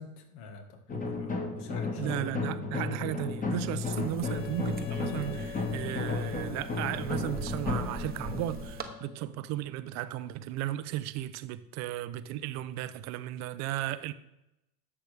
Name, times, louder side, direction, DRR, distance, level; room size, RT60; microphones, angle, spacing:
voice 1, 0.0-2.1 2.5-2.8, left 4 dB, 70° left, 1.7 m, -45 dB
sound 1, 0.9-9.7, left 3 dB, 15° left, 1.4 m, -34 dB
voice 2, 2.0-14.1, right 14 dB, 35° right, 0.5 m, -35 dB
sound 2, 3.8-8.8, right 4 dB, 20° right, 0.8 m, -43 dB
Wind instrument woodwind instrument, 4.2-9.3, left 12 dB, 40° left, 1.0 m, -48 dB
10.5 x 6.8 x 3.4 m
hypercardioid pair, 110°, 49 cm